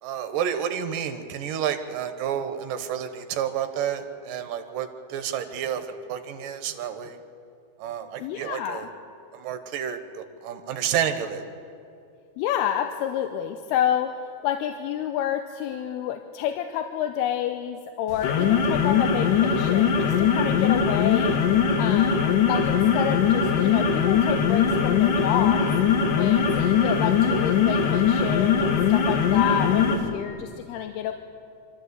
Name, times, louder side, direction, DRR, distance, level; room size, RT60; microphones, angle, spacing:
voice 1, 0.0-7.2 7.8-8.9 9.3-11.4, right 9 dB, 70° right, 8 dB, 2.5 m, -30 dB
voice 2, 8.2-8.9 12.4-21.4 21.8-25.7 26.2-31.1, left 10 dB, 90° left, 7 dB, 2.7 m, -29 dB
sound 1, 18.1-30.1, left 7 dB, 65° left, 2.9 m, -21 dB
25.0 x 13.5 x 8.1 m, 2.6 s
omnidirectional pair, 4.5 m